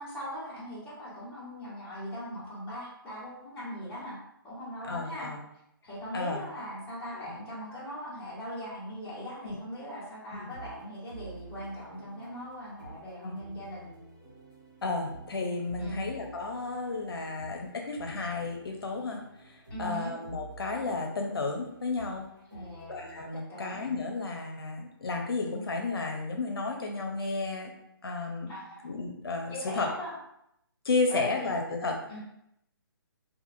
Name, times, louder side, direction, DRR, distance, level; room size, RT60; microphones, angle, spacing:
voice 1, 0.0-4.2 4.4-5.3 5.8-13.9 15.8-16.1 19.7-20.1 22.5-22.9 23.3-23.8 28.5-28.9 29.5-30.1 31.1-31.5 32.1-32.2, equal, 15° left, -10 dB, 1.1 m, -40 dB
voice 2, 4.8-5.4 6.1-6.4 7.1-7.2 9.4-9.6 10.3-10.5 13.2-13.4 14.8-22.2 22.9-27.7 28.0-28.5 28.8-29.9 30.8-31.9, left 3 dB, 75° left, 1 dB, 0.6 m, -32 dB
sound 1, 10.4-23.2, right 3 dB, 55° right, 1.4 m, -50 dB
2.7 x 2.6 x 2.6 m, 0.79 s
hypercardioid pair, 155°, 12 cm